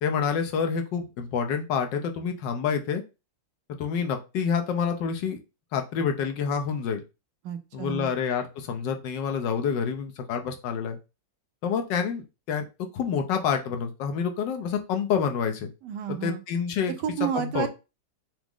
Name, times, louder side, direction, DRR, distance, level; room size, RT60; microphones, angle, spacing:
voice 1, 0.0-3.0 3.8-5.4 5.7-7.0 7.7-11.0 11.6-15.7 16.1-16.9 17.3-17.7, left 6 dB, 80° left, 5 dB, 1.4 m, -28 dB
voice 2, 7.4-8.1 15.8-16.4 17.0-17.7, right 9 dB, 75° right, 8 dB, 1.2 m, -30 dB
6.0 x 2.0 x 3.7 m, 0.29 s
omnidirectional pair, 2.0 m